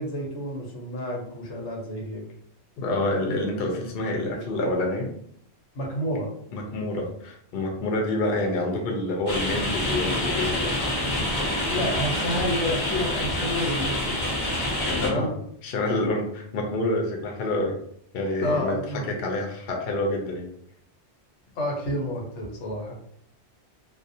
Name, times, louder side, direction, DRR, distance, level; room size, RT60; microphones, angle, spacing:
voice 1, 0.0-2.2 5.7-6.3 11.7-14.2 14.9-15.3 18.4-19.0 21.5-22.9, left 1 dB, 90° left, -1 dB, 1.1 m, -29 dB
voice 2, 2.8-5.1 6.5-10.7 15.0-15.3 15.6-17.8 18.1-18.8 19.1-20.5, left 2 dB, 65° left, 1 dB, 0.7 m, -27 dB
sound 1, 9.3-15.1, left 1 dB, 30° left, 0.5 m, -27 dB
2.4 x 2.0 x 2.6 m, 0.68 s
omnidirectional pair, 1.2 m